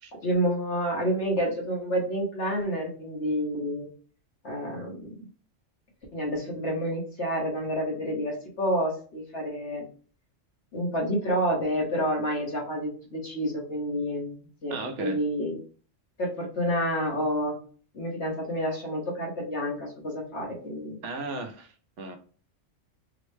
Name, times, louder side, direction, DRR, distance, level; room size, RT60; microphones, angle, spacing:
voice 1, 0.2-3.9 4.4-5.2 6.1-9.8 10.7-15.6 16.2-17.6 17.9-21.0, equal, 60° left, -2 dB, 1.5 m, -29 dB
voice 2, 14.7-15.2 21.0-22.2, right 3 dB, 70° right, 5 dB, 1.0 m, -35 dB
3.7 x 2.1 x 3.2 m, 0.40 s
omnidirectional pair, 1.3 m